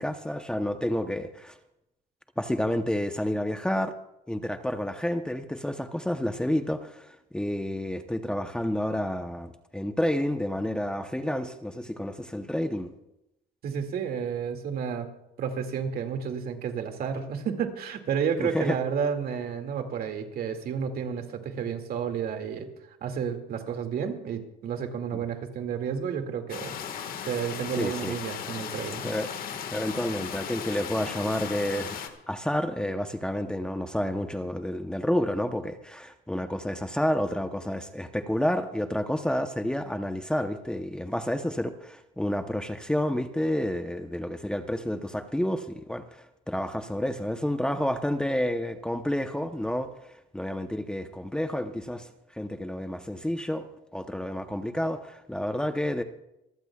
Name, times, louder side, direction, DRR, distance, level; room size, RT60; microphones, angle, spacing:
voice 1, 0.0-1.6 2.4-3.9 4.3-12.9 18.4-18.8 25.1-25.2 27.8-28.2 29.0-29.3 29.7-53.7 53.9-56.0, left 1 dB, 5° left, 7 dB, 0.8 m, -30 dB
voice 2, 13.6-15.1 15.4-22.7 23.0-27.0 27.3-29.0, right 7 dB, 60° right, 5 dB, 2.2 m, -31 dB
sound 1, 26.5-32.1, left 8 dB, 60° left, 1.6 m, -36 dB
25.5 x 15.0 x 2.4 m, 0.86 s
cardioid pair, 110°, 17 cm